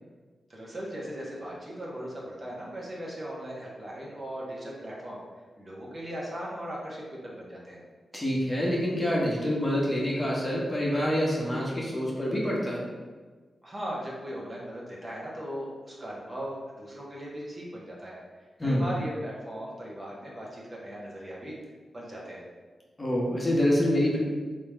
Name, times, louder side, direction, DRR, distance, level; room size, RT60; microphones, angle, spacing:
voice 1, 0.5-5.2 5.6-7.8 13.6-18.2 18.6-21.6 21.9-22.4, equal, 35° right, -4 dB, 1.2 m, -38 dB
voice 2, 8.1-12.8 18.6-18.8 23.0-24.2, equal, 25° left, -4 dB, 1.0 m, -26 dB
3.6 x 2.9 x 3.4 m, 1.4 s
cardioid pair, 45°, 0 cm